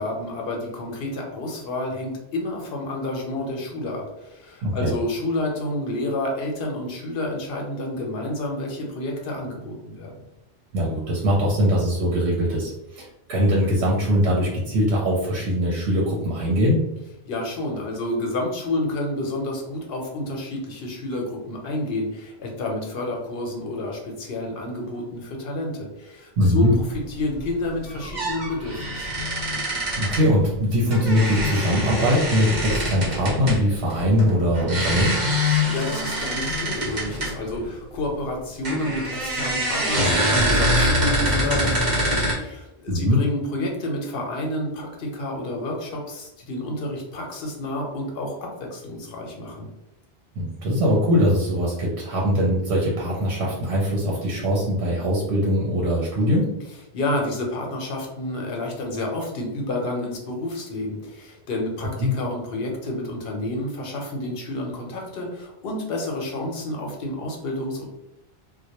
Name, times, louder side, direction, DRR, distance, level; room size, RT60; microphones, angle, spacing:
voice 1, 0.0-10.2 17.3-29.2 35.7-49.7 56.9-67.8, left 1 dB, 70° left, 0 dB, 0.8 m, -29 dB
voice 2, 4.6-4.9 10.7-16.8 26.4-26.7 30.0-35.2 42.9-43.2 50.4-56.5 62.0-62.1, equal, 80° right, -3 dB, 0.8 m, -21 dB
sound 1, 26.6-26.9 27.3-27.4 27.9-30.2 30.9-37.7 38.7-42.3, equal, 50° right, 0.8 m, -24 dB
2.1 x 2.0 x 2.8 m, 0.91 s
omnidirectional pair, 1.1 m